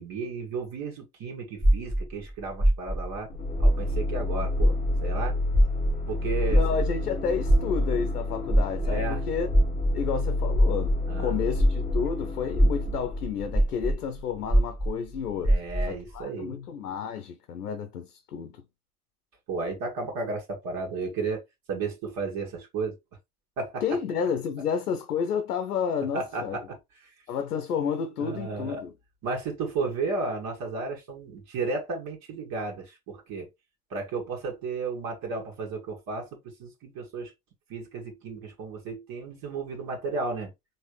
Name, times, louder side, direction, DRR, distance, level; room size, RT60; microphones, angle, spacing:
voice 1, 0.0-3.3 3.6-5.4 6.1-6.6 8.8-9.2 11.1-11.4 15.4-16.6 19.5-21.4 21.7-23.0 23.6-23.8 26.1-26.8 28.2-28.8 29.2-33.5 33.9-36.3 36.6-37.3 37.7-40.5, right 4 dB, 50° right, 2.0 m, -33 dB
sound 1, 1.6-4.3 4.5-12.1 12.5-16.0, right 1 dB, 25° right, 1.7 m, -24 dB
sound 2, 3.3-14.1, left 2 dB, 15° left, 1.7 m, -30 dB
voice 2, 6.5-9.5 9.9-15.6 15.9-18.6 23.8-26.6 27.3-28.9, left 7 dB, 85° left, 0.7 m, -31 dB
4.3 x 3.4 x 3.2 m
figure-of-eight pair, 65°, 45 cm